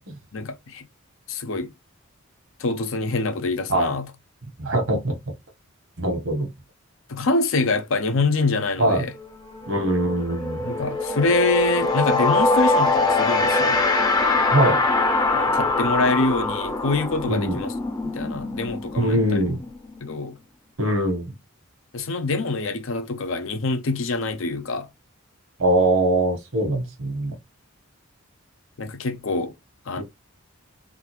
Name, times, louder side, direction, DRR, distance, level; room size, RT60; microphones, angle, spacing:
voice 1, 0.3-0.9 1.3-1.7 2.6-4.1 7.1-9.1 10.6-13.9 15.3-17.7 18.0-19.4 20.0-20.4 21.9-24.9 28.8-29.5 29.9-30.0, left 3 dB, 60° left, 0.6 m, -25 dB
voice 2, 4.6-5.2 6.0-6.5 8.8-9.0 9.7-10.6 14.5-14.8 17.3-17.6 19.0-19.6 20.8-21.3 25.6-27.4 30.0-30.1, right 1 dB, 65° right, 1.2 m, -22 dB
sound 1, 9.1-9.3 9.5-20.1, left 2 dB, 20° left, 0.6 m, -23 dB
3.5 x 2.4 x 3.1 m
head